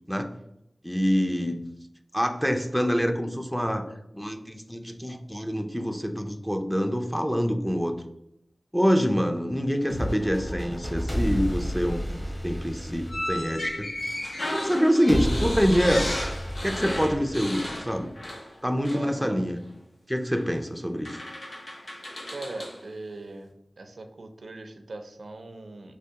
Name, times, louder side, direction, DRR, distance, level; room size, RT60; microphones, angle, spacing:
voice 1, 0.8-1.6 2.1-3.8 4.1-8.0 8.7-13.9 14.5-16.1 16.6-18.1 18.6-19.6 20.1-21.2, equal, ahead, 4 dB, 0.4 m, -26 dB
sound 1, 9.8-13.9 15.1-17.9, equal, 20° left, 1.1 m, -32 dB
sound 2, 9.9-13.8, equal, 50° left, 1.1 m, -40 dB
sound 3, 13.1-18.6 18.8-19.1 20.3-20.5 21.0-22.8, left 1 dB, 75° left, 0.8 m, -34 dB
voice 2, 18.9-19.4 22.3-23.5 23.8-25.9, right 2 dB, 85° right, 6 dB, 0.4 m, -40 dB
3.4 x 3.0 x 2.8 m, 0.81 s
wide cardioid pair, 50°, 0 cm